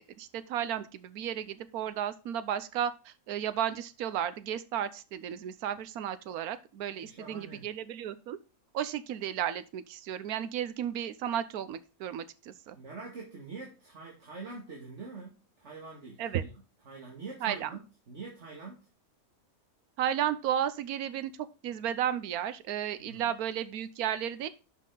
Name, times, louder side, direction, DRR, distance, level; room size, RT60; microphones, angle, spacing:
voice 1, 0.2-8.4 8.7-12.8 16.2-16.4 17.4-17.7 20.0-21.3 21.6-24.5, right 10 dB, 85° right, 13 dB, 1.2 m, -33 dB
voice 2, 6.9-7.7 12.7-16.5 16.9-18.8 23.0-23.3, right 4 dB, 55° right, -1 dB, 2.4 m, -45 dB
11.5 x 5.7 x 3.8 m, 0.33 s
omnidirectional pair, 1.5 m